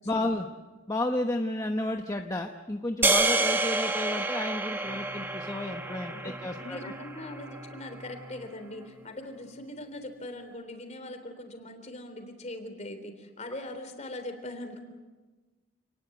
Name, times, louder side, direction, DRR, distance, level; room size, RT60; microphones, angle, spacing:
voice 1, 0.1-0.5 0.9-6.9, left 1 dB, 15° left, 4 dB, 1.0 m, -32 dB
sound 1, 3.0-7.4, right 2 dB, 10° right, 1.2 m, -28 dB
sound 2, 4.8-10.2, equal, 30° right, 2.6 m, -49 dB
voice 2, 6.1-14.8, left 1 dB, 35° left, 6 dB, 3.6 m, -41 dB
28.5 x 20.0 x 8.1 m, 1.3 s
head